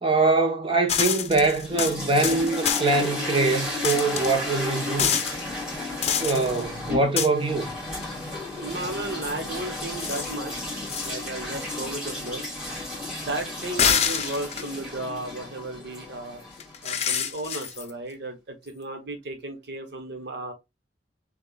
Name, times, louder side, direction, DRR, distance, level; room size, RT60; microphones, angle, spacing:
voice 1, 0.0-5.1 6.2-7.7, right 3 dB, 30° right, 0.9 m, -23 dB
sound 1, 0.9-3.1 3.8-4.3 5.0-5.3 6.0-6.6 7.2-7.3 8.0-8.1 10.0-10.3 10.9-11.1 13.6-14.8 16.6-17.9, left 7 dB, 35° left, 0.7 m, -26 dB
sound 2, 1.3-17.3, left 2 dB, 5° right, 2.7 m, -34 dB
voice 2, 8.6-10.7 11.0-12.4 13.2-16.4 16.8-20.5, right 2 dB, 65° right, 1.1 m, -34 dB
7.0 x 2.3 x 2.3 m
head